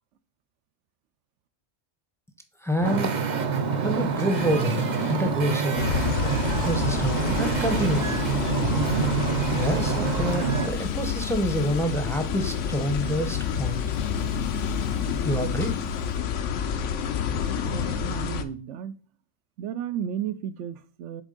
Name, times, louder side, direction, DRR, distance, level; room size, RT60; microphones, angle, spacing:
voice 1, 2.6-3.1 3.8-6.0 6.5-8.2 9.5-13.8 15.2-15.8, equal, 5° left, 0.6 m, -27 dB
Wind / Ocean, 2.8-10.7, right 5 dB, 45° right, 0.7 m, -26 dB
Telephone, 3.4-16.2, left 10 dB, 60° left, 0.7 m, -42 dB
sound 1, 5.8-18.4, left 7 dB, 90° left, 1.0 m, -29 dB
voice 2, 17.6-19.0 19.6-21.2, right 9 dB, 90° right, 0.9 m, -33 dB
8.1 x 3.6 x 3.8 m
omnidirectional pair, 1.2 m